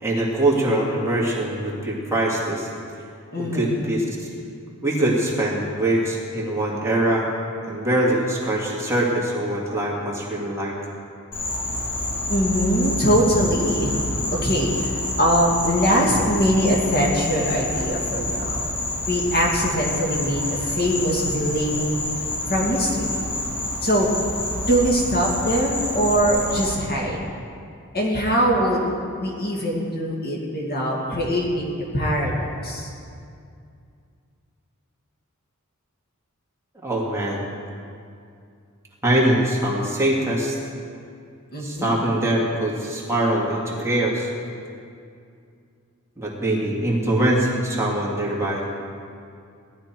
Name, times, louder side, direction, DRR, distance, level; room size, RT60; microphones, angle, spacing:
voice 1, 0.0-2.7 3.4-4.3 4.8-7.3 7.7-10.8 36.8-37.5 39.0-40.6 41.6-44.3 46.2-48.8, right 1 dB, 15° right, -5 dB, 2.3 m, -23 dB
voice 2, 3.3-3.8 12.3-14.9 15.2-18.7 19.1-22.0 22.5-23.2 23.8-24.1 24.7-27.2 27.9-28.8 29.2-32.9 41.5-41.9, equal, 45° left, -2 dB, 2.4 m, -22 dB
Insect, 11.3-26.8, left 1 dB, 90° left, 4.0 m, -28 dB
18.0 x 12.0 x 4.6 m, 2.4 s
head